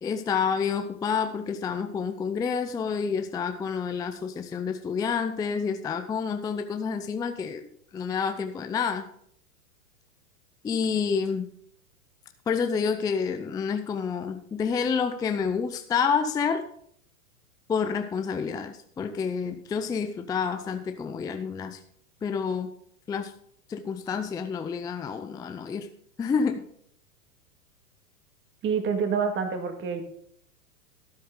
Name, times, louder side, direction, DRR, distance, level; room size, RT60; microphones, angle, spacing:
voice 1, 0.0-9.0 10.6-11.5 12.5-16.6 17.7-21.8 22.2-22.7 23.1-23.3 23.7-25.9 26.2-26.6, left 6 dB, 10° left, 7 dB, 0.5 m, -28 dB
voice 2, 28.6-30.1, right 6 dB, 30° right, 6 dB, 2.0 m, -27 dB
12.5 x 9.4 x 3.8 m, 0.66 s
hypercardioid pair, 125°, 42 cm